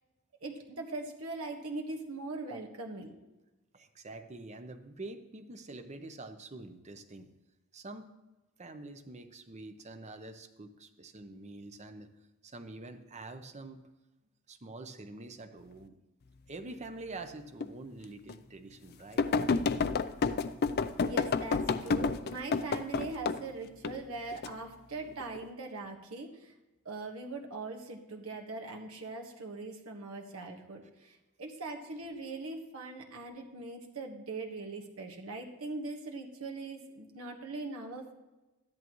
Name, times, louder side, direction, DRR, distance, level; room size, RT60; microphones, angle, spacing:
voice 1, 0.4-3.2 21.0-26.5 26.8-38.1, right 3 dB, 75° right, 2 dB, 1.5 m, -41 dB
voice 2, 3.7-7.3 7.7-8.1 8.6-12.1 12.4-13.9 14.5-16.0 16.5-19.2 31.0-31.1, right 2 dB, 35° right, 8 dB, 0.8 m, -46 dB
sound 1, 17.6-17.7 18.3-18.4 19.2-23.4 23.8-24.5 25.1-25.5, left 4 dB, 50° left, 0.4 m, -29 dB
13.5 x 10.5 x 3.1 m, 1.1 s
head